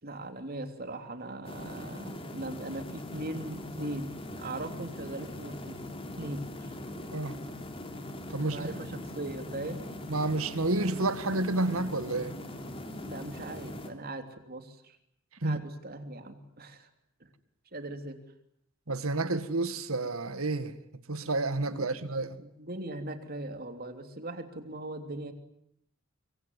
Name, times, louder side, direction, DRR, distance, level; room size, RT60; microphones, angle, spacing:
voice 1, 0.0-5.8 6.2-6.8 8.4-9.8 13.0-15.0 15.4-16.9 17.2-17.3 17.7-18.2 21.7-21.9 22.4-25.3, right 1 dB, 45° right, 3.3 m, -40 dB
sound 1, 1.4-13.9, left 1 dB, 25° left, 3.4 m, -41 dB
voice 2, 8.3-8.7 10.1-12.4 15.4-15.6 18.9-20.7 21.1-22.3, right 2 dB, 80° right, 2.0 m, -30 dB
25.5 x 24.0 x 9.6 m
head